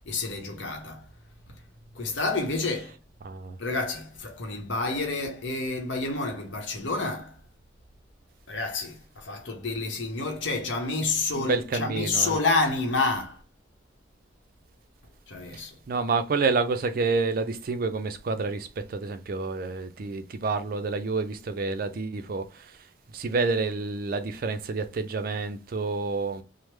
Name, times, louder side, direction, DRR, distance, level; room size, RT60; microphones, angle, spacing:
voice 1, 0.1-1.1 1.9-2.9 3.6-7.4 8.5-13.4 15.3-15.7, left 3 dB, 80° left, 0.8 m, -29 dB
voice 2, 3.2-3.6 11.3-12.4 15.5-15.6 15.9-22.8 23.1-26.4, right 4 dB, 50° right, 0.4 m, -28 dB
3.2 x 2.0 x 3.1 m
head